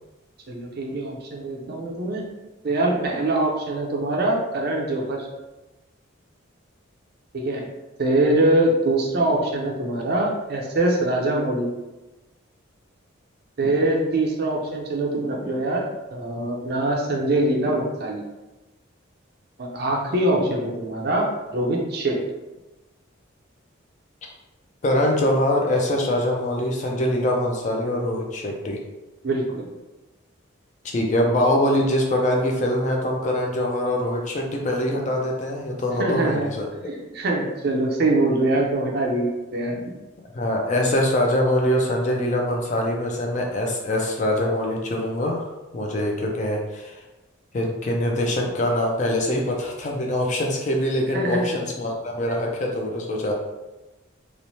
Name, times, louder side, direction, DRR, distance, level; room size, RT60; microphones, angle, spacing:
voice 1, 0.5-2.2 2.6-5.3 7.3-7.7 8.0-11.7 13.6-15.8 16.1-18.2 19.6-22.2 29.2-29.6 36.0-36.5 36.8-39.8 51.1-51.6 52.3-52.4, right 2 dB, 50° right, -1 dB, 0.5 m, -23 dB
voice 2, 24.8-28.8 30.8-36.7 40.3-45.5 45.7-47.0 47.5-53.3, left 1 dB, 35° left, 0 dB, 0.4 m, -23 dB
3.0 x 2.1 x 2.7 m, 1.1 s
head